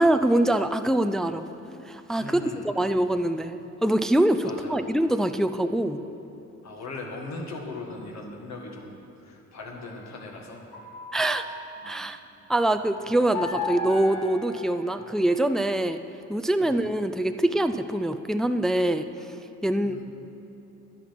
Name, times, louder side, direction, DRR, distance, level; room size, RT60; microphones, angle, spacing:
voice 1, 0.0-1.5 1.9-6.0 11.1-11.4 11.8-12.2 12.5-16.0 16.3-19.1 19.6-20.0, right 1 dB, ahead, 9 dB, 0.4 m, -24 dB
voice 2, 2.2-2.7 4.4-4.9 6.6-9.0 9.2-10.6 11.8-12.1 16.6-16.9 19.8-20.0, left 2 dB, 65° left, 0 dB, 1.9 m, -39 dB
sound 1, 9.8-12.1 13.3-15.6, left 4 dB, 90° left, 2.0 m, -36 dB
11.0 x 10.0 x 5.8 m, 2.9 s
cardioid pair, 90°, 30 cm